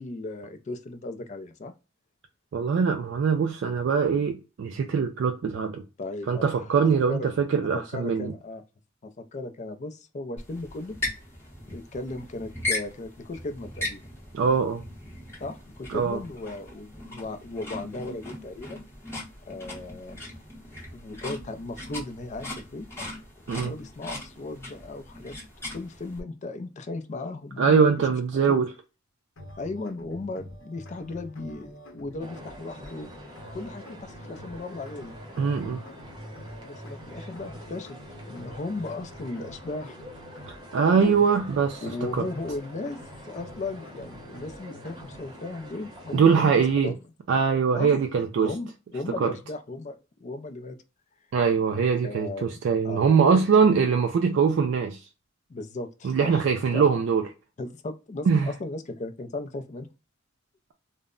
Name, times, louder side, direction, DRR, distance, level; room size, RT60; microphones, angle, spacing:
voice 1, 0.0-1.7 6.0-6.7 7.1-7.3 7.7-8.6 9.0-11.0 11.7-14.0 15.4-18.9 19.4-20.2 20.9-22.9 23.6-25.4 25.7-28.1 28.4-28.6 29.6-33.1 33.5-35.2 36.6-40.0 40.9-41.2 41.8-46.9 47.7-48.0 48.4-50.8 52.0-52.5 52.8-53.4 55.5-56.9 57.6-59.9, left 2 dB, 35° left, 0.4 m, -36 dB
voice 2, 2.5-5.8 6.3-8.3 14.3-14.8 15.9-16.2 23.5-23.7 27.6-28.7 35.4-35.8 40.5-42.3 46.1-46.9 47.3-48.5 49.2-49.3 51.3-55.0 56.0-57.2 58.3-58.5, right 6 dB, 65° right, 0.3 m, -22 dB
sound 1, 10.4-26.2, left 2 dB, 15° left, 0.8 m, -38 dB
sound 2, 29.4-45.4, equal, 85° left, 0.8 m, -46 dB
sound 3, 32.2-46.7, equal, 25° right, 0.8 m, -46 dB
2.1 x 2.0 x 3.5 m
head